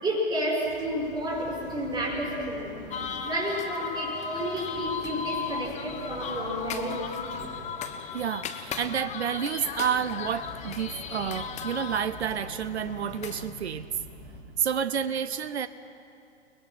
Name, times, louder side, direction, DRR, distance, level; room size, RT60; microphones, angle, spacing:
voice 1, 0.0-2.9 3.2-7.1, equal, 15° right, -2 dB, 6.0 m, -31 dB
sound 1, 0.6-14.4, equal, 35° right, 6.7 m, -47 dB
sound 2, 2.9-13.5, left 6 dB, 20° left, 1.2 m, -36 dB
voice 2, 8.1-13.9 14.6-15.7, right 8 dB, 75° right, 13 dB, 0.8 m, -29 dB
30.0 x 20.5 x 6.0 m, 2.6 s
figure-of-eight pair, 110°, 33 cm